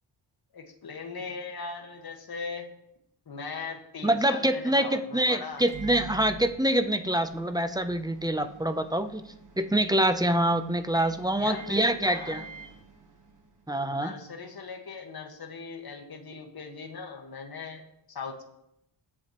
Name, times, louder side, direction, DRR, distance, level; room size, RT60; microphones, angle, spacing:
voice 1, 0.5-2.7 3.3-5.6 11.4-12.5 13.9-17.8 18.1-18.4, left 5 dB, 50° left, 2 dB, 1.6 m, -39 dB
voice 2, 4.0-9.2 9.6-12.4 13.7-14.1, right 1 dB, 10° right, 9 dB, 0.5 m, -25 dB
Microwave oven, 5.5-13.7, right 5 dB, 40° right, 1.3 m, -47 dB
22.0 x 7.5 x 3.0 m, 0.81 s
wide cardioid pair, 160°, 48 cm